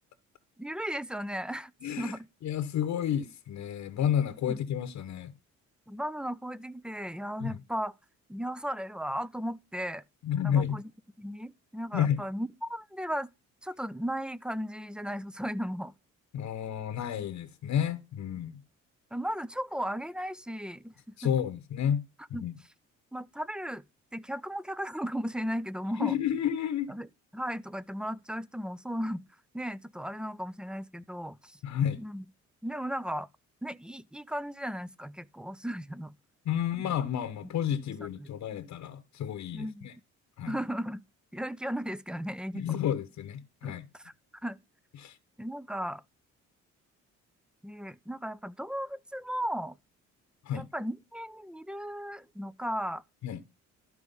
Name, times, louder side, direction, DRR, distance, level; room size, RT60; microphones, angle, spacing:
voice 1, 0.6-1.7 2.0-2.3 4.5-4.6 5.9-7.9 8.3-10.0 10.4-10.9 11.2-13.3 13.6-15.9 19.1-20.9 22.3-22.5 23.1-23.8 24.1-26.2 26.9-27.1 27.3-29.2 29.5-31.6 32.0-32.2 32.6-33.3 33.6-36.1 36.7-36.9 38.0-38.3 39.5-39.9 40.5-41.0 41.3-42.8 43.6-44.1 44.4-44.6 45.4-46.0 47.6-49.8 50.5-53.0, equal, 5° right, 0.4 m, -36 dB
voice 2, 1.8-2.1 2.4-5.3 7.4-7.6 10.2-10.8 11.9-12.2 16.3-18.6 21.2-22.0 22.3-22.5 26.0-26.9 31.6-32.0 36.5-39.9 40.4-40.5 42.5-43.9 45.0-45.2 50.4-50.7 53.2-53.4, left 9 dB, 65° left, 0.9 m, -31 dB
12.5 x 4.8 x 5.4 m
cardioid pair, 90°, 30 cm